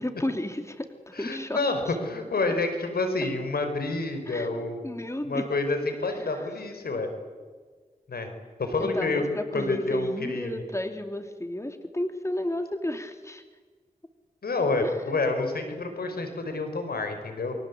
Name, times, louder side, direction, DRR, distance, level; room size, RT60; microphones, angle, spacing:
voice 1, 0.0-1.6 1.8-2.0 4.3-4.5 4.8-5.5 6.3-6.5 8.8-13.4 14.8-15.0, left 1 dB, 20° left, 7 dB, 3.0 m, -32 dB
voice 2, 1.1-4.9 5.2-7.1 8.1-8.3 8.6-9.2 9.5-10.5 14.4-17.5, left 3 dB, 85° left, 6 dB, 4.7 m, -28 dB
28.5 x 24.0 x 8.5 m, 1.5 s
cardioid pair, 45°, 15 cm